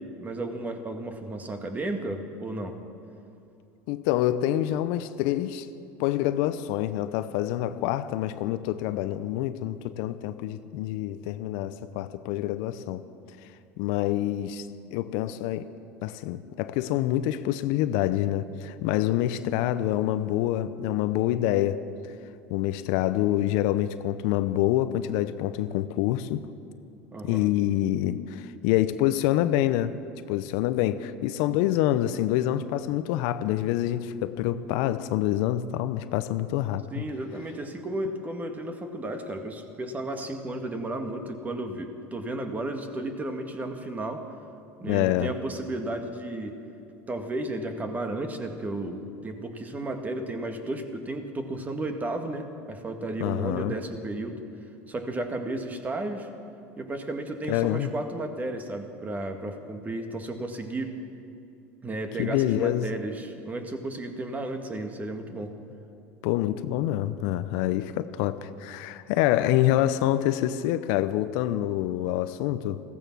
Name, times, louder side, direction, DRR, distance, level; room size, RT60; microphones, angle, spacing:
voice 1, 0.2-2.8 27.1-27.5 34.5-34.6 36.9-44.2 44.8-46.6 47.1-54.4 54.9-56.3 56.8-60.9 61.8-65.5, right 2 dB, 25° right, 6 dB, 1.8 m, -33 dB
voice 2, 3.9-5.7 6.0-13.0 13.8-14.7 14.9-15.7 16.0-21.8 22.5-26.5 27.2-29.9 30.3-37.0 44.9-45.4 53.2-53.7 57.5-57.9 62.2-62.9 66.2-72.8, left 13 dB, 70° left, 13 dB, 0.6 m, -26 dB
15.5 x 14.5 x 6.2 m, 2.7 s
hypercardioid pair, 90°, 7 cm